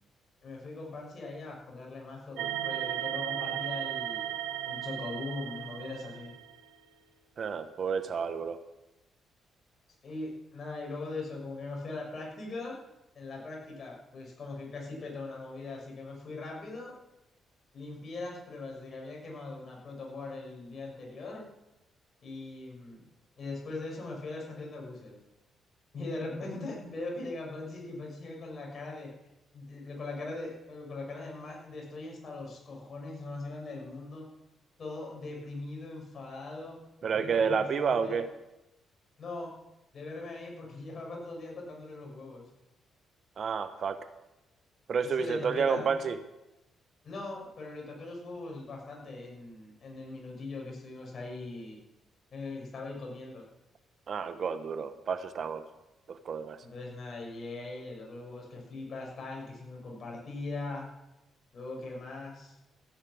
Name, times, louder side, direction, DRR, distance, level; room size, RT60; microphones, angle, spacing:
voice 1, 0.4-4.3 4.7-6.3 10.0-12.8 13.1-16.9 17.7-21.4 22.2-23.1 23.4-25.2 25.9-29.1 29.5-34.3 34.8-36.8 37.1-38.2 39.2-39.5 39.9-42.5 45.0-45.9 47.0-51.8 52.3-53.4 56.6-60.9 61.5-62.6, left 2 dB, 45° left, -1 dB, 6.4 m, -40 dB
sound 1, 2.4-6.6, right 11 dB, 85° right, 1.0 m, -35 dB
voice 2, 7.4-8.6 37.0-38.3 43.4-44.0 44.9-46.2 54.1-55.6 56.1-56.6, right 6 dB, 55° right, 11 dB, 1.0 m, -30 dB
16.0 x 9.7 x 6.2 m, 0.95 s
cardioid pair, 90°, 0 cm